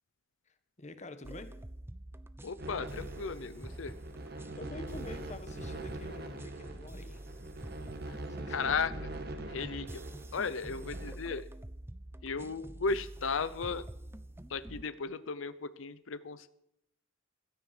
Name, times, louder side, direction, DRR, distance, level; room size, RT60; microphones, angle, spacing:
voice 1, 0.5-1.5 4.5-7.2 8.3-8.8, left 2 dB, 35° left, 9 dB, 1.4 m, -47 dB
sound 1, 1.2-14.8, right 1 dB, 10° right, 0.6 m, -46 dB
voice 2, 2.4-3.9 8.1-8.2 8.5-8.9 9.5-10.0 10.3-11.4 12.2-13.8 14.5-16.5, left 4 dB, 85° left, 14 dB, 0.7 m, -35 dB
sound 2, 2.6-11.1, right 1 dB, 55° right, 1.6 m, -43 dB
16.0 x 13.5 x 6.0 m, 0.81 s
head